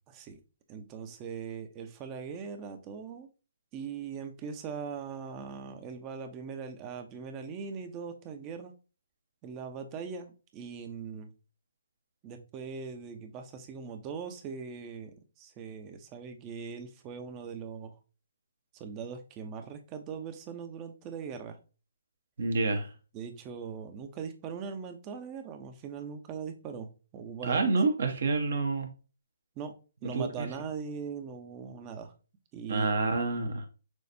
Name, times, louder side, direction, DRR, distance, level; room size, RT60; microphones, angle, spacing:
voice 1, 0.1-0.4 0.7-3.3 3.7-8.7 9.4-11.3 12.2-17.9 18.7-21.6 23.1-27.7 29.6-29.7 30.0-32.1 32.5-32.9, right 6 dB, 25° right, 6 dB, 0.7 m, -40 dB
voice 2, 22.4-22.9 27.4-28.9 30.0-30.5 32.7-33.6, right 3 dB, 60° right, 4 dB, 1.2 m, -28 dB
6.2 x 2.5 x 2.7 m, 0.33 s
figure-of-eight pair, 145°, 0 cm